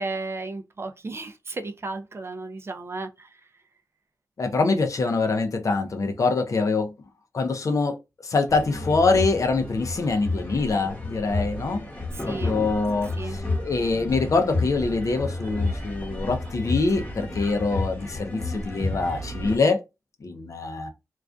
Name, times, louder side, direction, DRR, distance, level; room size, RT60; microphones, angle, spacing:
voice 1, 0.0-3.3 12.1-12.5 13.2-13.4, right 3 dB, 40° right, 0.4 m, -34 dB
voice 2, 4.4-6.9 7.3-8.0 8.2-11.9 12.2-19.8 20.2-20.9, left 3 dB, 55° left, 0.5 m, -24 dB
sound 1, 8.5-19.6, left 2 dB, 25° left, 0.9 m, -31 dB
2.5 x 2.3 x 2.3 m
cardioid pair, 65°, 6 cm